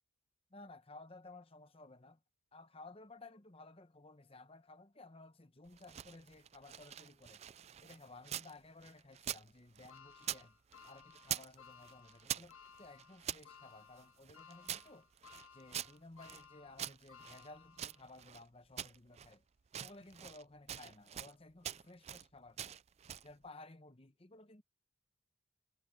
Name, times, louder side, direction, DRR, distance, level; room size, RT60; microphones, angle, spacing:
voice 1, 0.5-2.2 2.5-7.4 7.8-10.6 10.9-15.1 15.5-19.4 19.8-22.8 23.2-24.6, left 2 dB, 25° left, 0.9 m, -56 dB
sound 1, 5.7-8.5 8.8-10.5 10.7-11.6 11.8-13.4 14.0-16.4 16.8-18.4 18.8-19.3 19.7-20.4 20.7-21.3 21.6-22.3 22.6-23.3, right 10 dB, 30° right, 0.3 m, -44 dB
sound 2, 9.9-18.2 18.7-18.8 20.0-20.1, left 6 dB, 80° left, 1.5 m, -60 dB
head